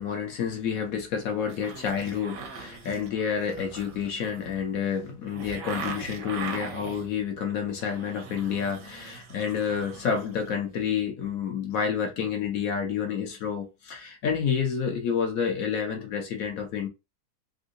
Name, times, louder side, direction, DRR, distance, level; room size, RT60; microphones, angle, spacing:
voice 1, 0.0-16.9, left 7 dB, 70° left, 0.9 m, -29 dB
sound 1, 1.5-7.1 7.6-10.5 10.8-10.9, right 5 dB, 60° right, 0.9 m, -41 dB
3.6 x 2.6 x 2.5 m
omnidirectional pair, 2.1 m